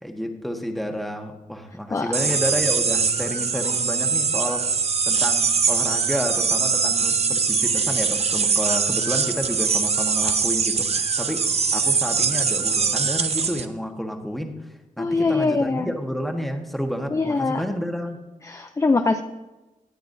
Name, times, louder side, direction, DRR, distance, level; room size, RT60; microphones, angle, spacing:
voice 1, 0.0-4.7 5.0-14.5 15.0-18.2, equal, ahead, 3 dB, 1.3 m, -30 dB
sound 1, 2.1-13.7, right 5 dB, 50° right, 0.7 m, -22 dB
voice 2, 15.0-15.9 17.1-17.6 18.4-19.2, left 3 dB, 20° left, 7 dB, 0.5 m, -22 dB
19.0 x 10.0 x 2.7 m, 1.1 s
wide cardioid pair, 115°, 14 cm